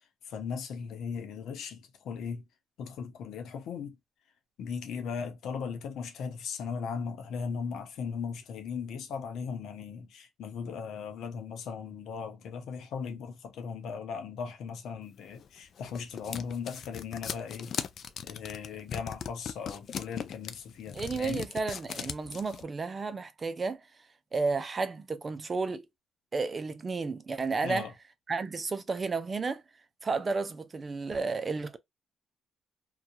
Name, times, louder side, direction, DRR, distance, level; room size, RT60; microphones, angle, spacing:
voice 1, 0.3-2.4 2.8-4.0 4.6-17.7 18.2-21.5 27.6-27.9, left 6 dB, 75° left, 0.8 m, -38 dB
sound 1, 15.4-22.6, left 7 dB, 60° left, 0.4 m, -38 dB
voice 2, 20.9-23.8 24.3-25.8 26.3-27.9 28.3-29.6 30.0-31.8, right 4 dB, 35° right, 0.5 m, -32 dB
2.7 x 2.3 x 2.3 m
cardioid pair, 90°, 0 cm